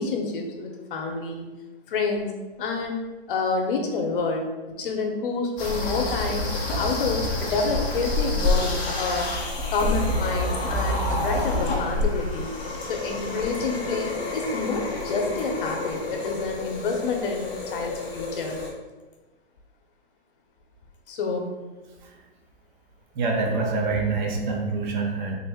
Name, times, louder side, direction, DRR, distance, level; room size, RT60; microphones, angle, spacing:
voice 1, 0.0-1.4 1.9-2.3 2.6-3.0 3.3-4.5 4.8-6.5 6.8-9.3 9.7-12.5 12.9-18.6 21.1-21.6, left 4 dB, 55° left, 2 dB, 0.8 m, -28 dB
sound 1, 5.6-18.7, left 2 dB, 15° left, 0.5 m, -28 dB
voice 2, 23.1-25.3, right 3 dB, 50° right, 1 dB, 0.6 m, -26 dB
3.8 x 2.0 x 3.4 m, 1.2 s
hypercardioid pair, 150°, 32 cm